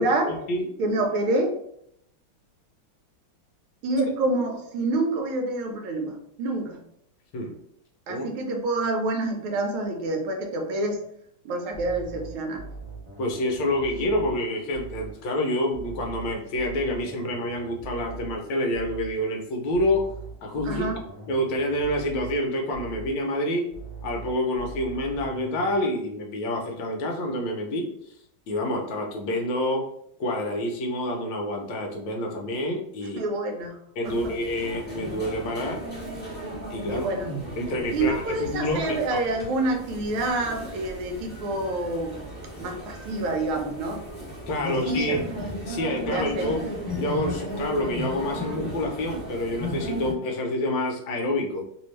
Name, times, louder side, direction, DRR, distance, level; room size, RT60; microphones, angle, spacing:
voice 1, 0.0-0.3 0.8-1.5 3.8-6.8 8.1-11.0 11.4-12.6 20.6-21.0 33.2-33.8 34.0-34.3 36.9-37.3 37.9-42.2 42.6-44.0 44.6-45.2 46.1-46.6, right 2 dB, 75° right, 3 dB, 1.4 m, -27 dB
sound 1, 11.7-15.2 15.7-19.2 19.7-23.2 23.7-25.8, right 4 dB, 50° right, 0.4 m, -41 dB
voice 2, 13.2-20.1 20.4-20.8 21.3-23.7 24.0-27.9 28.5-29.9 30.2-33.2 34.0-35.8 36.7-37.1 37.6-38.8 44.5-45.2 45.7-46.7 47.0-51.6, left 1 dB, 70° left, 1 dB, 1.2 m, -27 dB
sound 2, 34.0-50.1, equal, 10° left, 0.7 m, -35 dB
3.4 x 2.6 x 3.1 m, 0.72 s
omnidirectional pair, 2.4 m